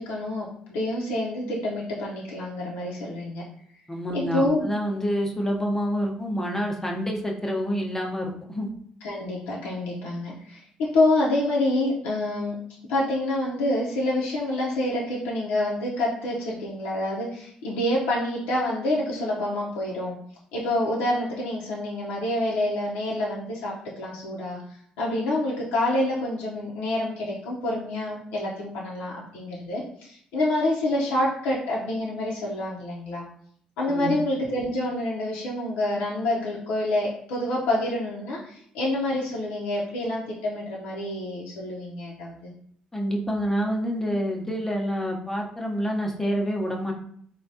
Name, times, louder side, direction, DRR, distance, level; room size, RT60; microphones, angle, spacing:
voice 1, 0.0-3.4 4.1-4.7 9.0-12.6 12.9-20.2 20.5-24.6 25.0-33.2 33.8-42.5, left 1 dB, 90° left, -5 dB, 0.6 m, -27 dB
voice 2, 3.9-8.7 33.9-34.2 42.9-46.9, equal, 15° left, 1 dB, 0.6 m, -27 dB
3.3 x 2.2 x 2.6 m, 0.64 s
supercardioid pair, 75°, 3 cm